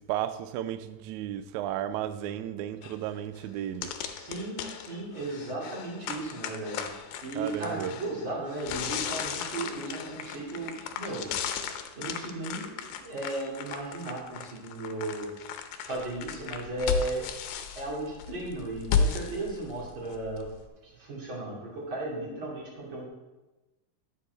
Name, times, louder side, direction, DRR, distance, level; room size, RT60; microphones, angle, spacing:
voice 1, 0.0-4.0 7.4-8.0, right 11 dB, 85° right, 1.7 m, -34 dB
sound 1, 2.8-3.0 3.4-3.5 3.8-20.7, left 6 dB, 90° left, 2.5 m, -35 dB
voice 2, 4.2-6.8 7.2-11.3 11.9-15.3 15.8-17.3 17.7-20.5 20.8-23.1, right 2 dB, 35° right, 3.2 m, -35 dB
11.0 x 7.3 x 4.0 m
omnidirectional pair, 4.0 m